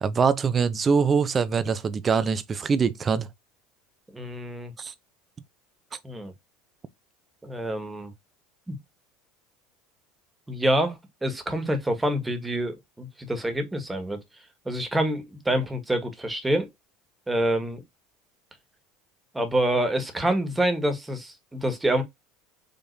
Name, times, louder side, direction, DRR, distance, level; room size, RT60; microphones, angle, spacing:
voice 1, 0.0-3.3 4.8-4.9, right 5 dB, 30° right, 0.8 m, -23 dB
voice 2, 4.1-4.7 6.0-6.3 7.4-8.1 8.7-8.8 10.5-14.2 14.6-16.7 17.3-17.8 19.3-22.0, right 1 dB, 10° right, 1.7 m, -27 dB
5.1 x 3.4 x 2.7 m
hypercardioid pair, 80°, 0 cm